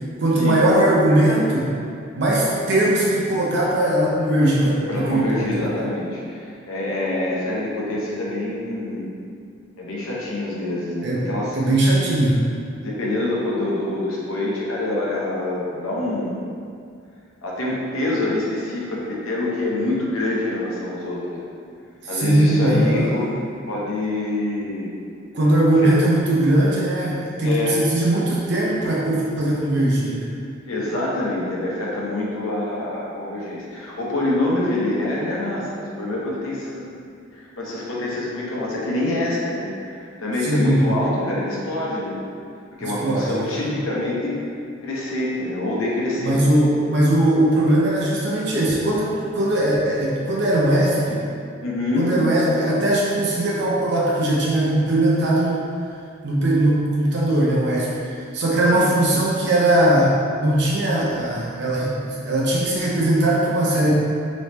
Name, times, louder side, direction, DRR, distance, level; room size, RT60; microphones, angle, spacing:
voice 1, 0.2-1.7 2.2-5.5 11.0-11.3 11.5-12.5 22.1-23.1 25.3-30.3 40.4-40.8 42.8-43.7 46.2-51.3 52.0-55.6 56.2-63.9, right 1 dB, 55° right, -6 dB, 0.6 m, -20 dB
voice 2, 4.4-9.1 9.8-11.6 12.8-16.4 17.4-21.5 22.1-23.3 23.7-24.9 25.8-25.9 27.4-27.8 30.6-36.9 37.3-42.2 42.8-44.4 44.8-46.6 51.6-52.2 58.7-58.9, left 2 dB, 85° left, -5 dB, 0.9 m, -26 dB
3.4 x 3.1 x 4.1 m, 2.3 s
head